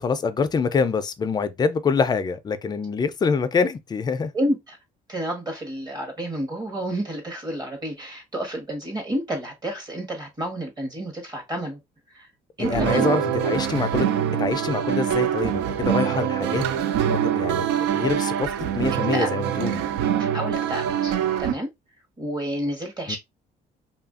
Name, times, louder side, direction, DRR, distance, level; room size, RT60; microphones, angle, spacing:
voice 1, 0.0-4.3 12.6-14.1 14.4-16.6 17.1-17.7 17.9-19.8 23.1-23.2, left 5 dB, 25° left, 0.4 m, -25 dB
voice 2, 4.3-4.8 5.1-11.8 12.1-12.3 12.6-13.1 19.1-19.3 20.2-21.1 21.4-21.7 22.2-23.2, equal, 25° right, 1.1 m, -30 dB
sound 1, 12.6-21.5, right 9 dB, 85° right, 0.4 m, -24 dB
2.6 x 2.4 x 2.4 m
cardioid pair, 110°, 17 cm